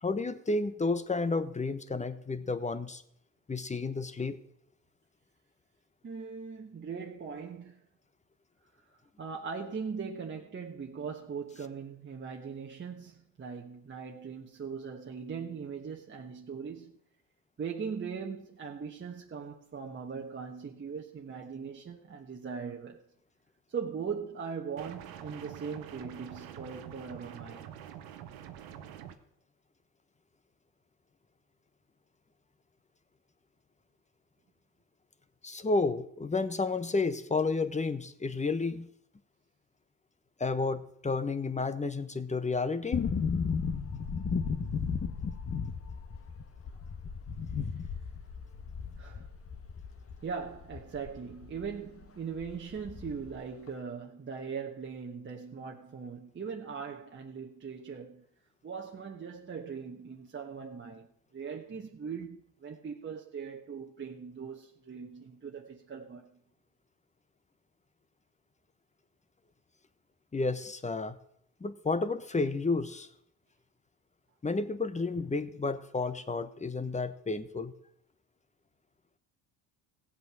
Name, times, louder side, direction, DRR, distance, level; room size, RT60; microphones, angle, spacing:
voice 1, 0.0-3.0 3.5-4.4 35.4-38.9 40.4-43.0 70.3-71.2 71.6-73.1 74.4-77.7, left 3 dB, 20° left, 1.1 m, -31 dB
voice 2, 6.0-7.8 8.9-17.0 17.6-23.0 23.7-27.7 49.0-49.3 50.2-58.2 58.6-66.4, right 6 dB, 30° right, 1.3 m, -40 dB
sound 1, 24.8-29.2, right 10 dB, 85° right, 1.2 m, -46 dB
sound 2, 42.9-51.8 52.0-52.1 52.4-53.4 53.7-53.8, left 6 dB, 40° left, 1.4 m, -35 dB
16.0 x 8.0 x 6.2 m
supercardioid pair, 75°, 36 cm